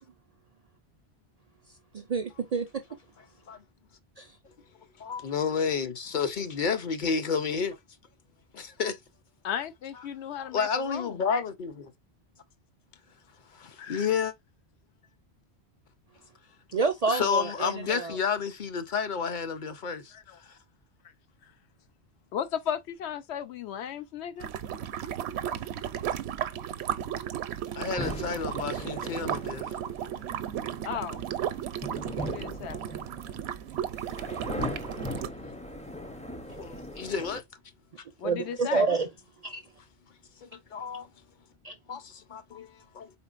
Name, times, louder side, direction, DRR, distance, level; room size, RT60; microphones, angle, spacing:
voice 1, 1.9-2.8 4.2-4.3 16.7-18.2 38.2-39.1 39.4-39.6 41.6-41.7, right 4 dB, 55° right, 0.4 m, -28 dB
voice 2, 5.0-7.8 8.5-9.0 10.0-10.1 10.4-11.9 13.5-14.3 17.1-20.1 20.4-20.6 27.7-29.7 36.6-37.4 40.4-41.1 41.9-43.1, left 6 dB, 55° left, 0.7 m, -31 dB
voice 3, 9.4-11.2 13.8-14.1 20.1-20.4 22.3-24.5 30.8-31.2 32.1-32.8 38.2-38.9, left 9 dB, 85° left, 0.9 m, -35 dB
sound 1, 24.4-35.3, right 10 dB, 75° right, 0.8 m, -34 dB
sound 2, 28.0-37.4, left 1 dB, 10° left, 0.3 m, -39 dB
4.3 x 3.7 x 2.4 m
omnidirectional pair, 1.1 m